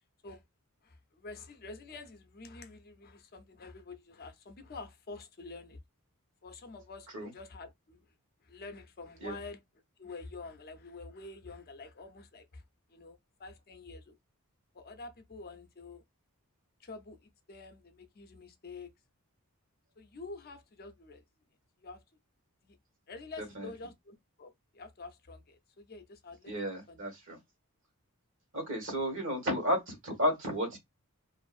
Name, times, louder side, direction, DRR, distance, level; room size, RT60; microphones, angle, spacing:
voice 1, 0.8-5.8 6.4-8.0 8.4-9.6 10.0-12.6 12.9-14.1 14.7-16.0 16.8-18.9 20.0-21.2 21.8-22.0 22.6-22.8 23.1-26.5 26.9-27.0, left 3 dB, 45° left, 0.5 m, -48 dB
voice 2, 26.5-27.4 28.5-30.8, equal, 55° right, 1.2 m, -32 dB
2.5 x 2.4 x 2.4 m
head